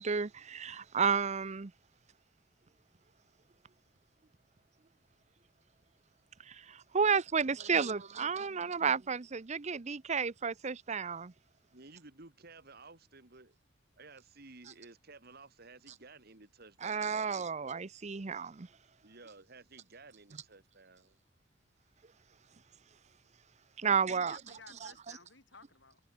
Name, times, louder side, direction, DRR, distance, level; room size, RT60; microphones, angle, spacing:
voice 1, 0.0-1.7 6.5-11.3 16.8-18.7 23.8-24.4 24.8-24.9, right 6 dB, 40° right, 0.7 m, -32 dB
voice 2, 7.4-8.9 11.7-13.6 14.0-17.6 19.0-21.2, right 3 dB, 55° right, 2.8 m, -55 dB
voice 3, 23.8-26.0, left 4 dB, 70° left, 6.8 m, -56 dB
head